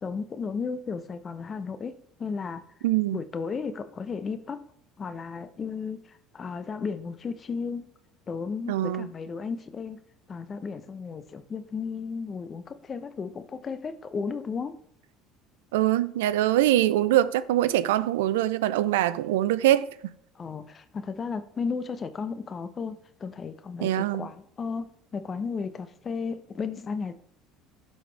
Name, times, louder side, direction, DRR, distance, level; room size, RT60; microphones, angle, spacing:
voice 1, 0.0-1.9 2.2-2.6 3.1-4.6 5.0-7.9 8.3-10.0 10.3-14.7 20.4-27.1, left 5 dB, 35° left, 0.8 m, -34 dB
voice 2, 2.8-3.2 8.7-9.1 15.7-19.9 23.8-24.3, right 13 dB, 90° right, 0.4 m, -23 dB
11.5 x 4.0 x 3.4 m
supercardioid pair, 90°, 0 cm